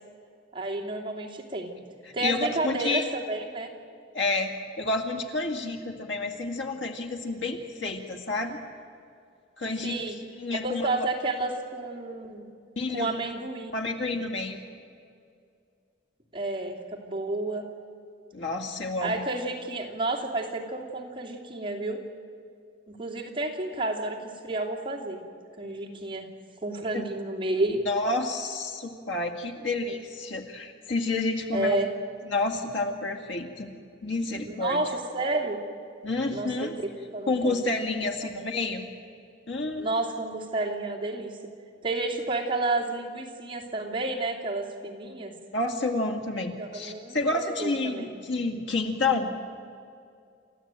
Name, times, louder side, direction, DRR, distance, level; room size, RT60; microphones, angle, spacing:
voice 1, 0.5-1.7 2.1-3.7 9.8-10.2 10.5-12.5 12.9-13.7 16.3-17.7 19.0-22.0 22.9-25.2 25.6-26.3 26.6-27.8 31.5-31.9 34.5-35.6 36.3-36.7 37.1-37.6 38.2-38.4 39.8-41.3 41.8-45.3 46.6-48.1, right 2 dB, 25° right, -2 dB, 2.7 m, -31 dB
voice 2, 2.1-3.1 4.1-8.6 9.6-10.0 10.4-10.9 12.8-13.2 13.7-14.6 18.3-19.2 26.9-27.0 27.9-31.8 32.3-33.7 34.0-34.8 36.0-36.7 37.3-38.8 39.5-39.9 45.5-49.3, left 2 dB, 75° left, 4 dB, 2.3 m, -29 dB
29.0 x 14.5 x 9.0 m, 2.4 s
head